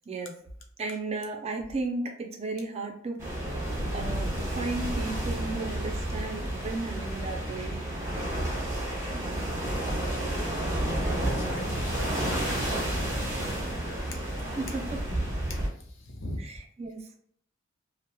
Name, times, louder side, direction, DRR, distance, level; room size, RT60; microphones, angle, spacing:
voice 1, 0.8-3.2 3.9-7.8 8.1-8.4 8.8-9.5 14.6-15.0 16.4-17.2, right 3 dB, 30° right, 3 dB, 0.4 m, -35 dB
sound 1, 3.2-15.7, right 1 dB, 15° right, 0.9 m, -31 dB
voice 2, 10.7-14.2 15.5-16.4, left 1 dB, 65° left, 2 dB, 0.6 m, -42 dB
2.9 x 2.0 x 2.2 m, 0.65 s
head